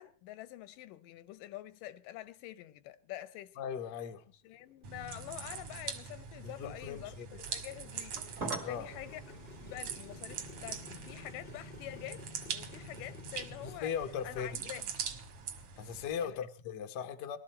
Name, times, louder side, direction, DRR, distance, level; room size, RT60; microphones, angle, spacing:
voice 1, 0.0-3.6 4.4-12.3 12.5-13.9 14.2-14.9 16.2-16.5, left 14 dB, 85° left, 2.4 m, -47 dB
voice 2, 3.6-4.2 6.4-7.3 8.6-8.9 13.6-14.7 15.8-17.4, left 7 dB, 70° left, 0.9 m, -38 dB
Motorcycle, 4.4-13.8, left 3 dB, 45° left, 0.6 m, -53 dB
sound 1, 4.8-16.1, right 7 dB, 55° right, 1.9 m, -43 dB
sound 2, 7.5-16.5, right 3 dB, 30° right, 1.5 m, -49 dB
20.5 x 13.0 x 4.3 m
omnidirectional pair, 3.7 m